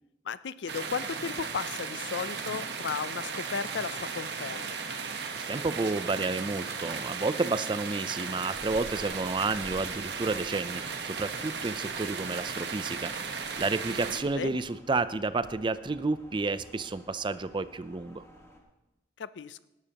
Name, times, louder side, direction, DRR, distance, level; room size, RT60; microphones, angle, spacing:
voice 1, 0.3-4.8 14.1-14.6 19.2-19.7, left 6 dB, 80° left, 16 dB, 0.5 m, -35 dB
sound 1, 0.7-14.2, right 5 dB, 65° right, 1.1 m, -36 dB
voice 2, 5.5-18.2, right 3 dB, 25° right, 14 dB, 0.5 m, -31 dB
sound 2, 8.5-18.6, equal, 15° left, 1.6 m, -53 dB
18.5 x 12.0 x 2.9 m, 0.99 s
head